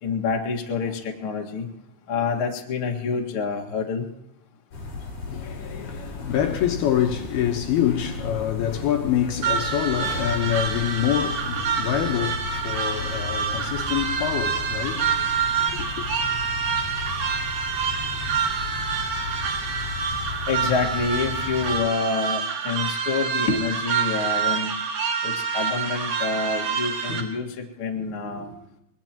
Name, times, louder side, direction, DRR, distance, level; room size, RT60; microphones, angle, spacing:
voice 1, 0.0-1.7 2.1-4.1 20.5-24.7 25.2-28.5, left 4 dB, 50° left, 1.6 m, -27 dB
sound 1, 4.7-21.8, left 3 dB, 35° left, 5.4 m, -35 dB
voice 2, 5.3-15.4 15.7-16.1, left 10 dB, 75° left, 2.6 m, -26 dB
sound 2, 9.4-27.2, right 6 dB, 50° right, 2.7 m, -27 dB
24.0 x 20.0 x 3.0 m
omnidirectional pair, 5.3 m